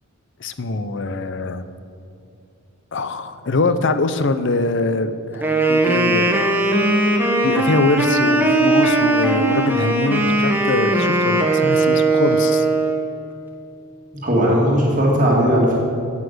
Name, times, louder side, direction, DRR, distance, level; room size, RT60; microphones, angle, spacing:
voice 1, 0.4-1.7 2.9-6.4 7.4-12.7, left 2 dB, 55° left, 11 dB, 0.6 m, -23 dB
Wind instrument woodwind instrument, 5.3-13.1, right 2 dB, 10° right, 1.0 m, -18 dB
voice 2, 14.2-15.8, equal, 35° right, -3 dB, 2.0 m, -17 dB
9.7 x 8.4 x 7.9 m, 2.6 s
head